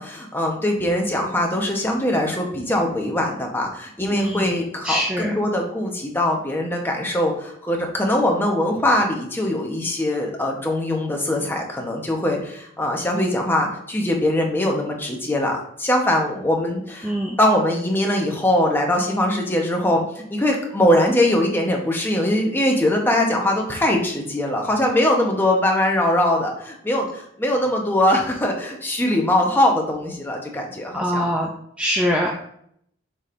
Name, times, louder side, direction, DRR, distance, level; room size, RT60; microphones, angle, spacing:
voice 1, 0.0-17.1 17.4-31.3, left 1 dB, 10° left, 0 dB, 1.0 m, -22 dB
voice 2, 4.1-4.5 4.8-5.3 17.0-17.4 30.9-31.5 31.8-32.4, equal, 5° right, -1 dB, 0.5 m, -23 dB
7.1 x 5.2 x 2.6 m, 0.70 s
head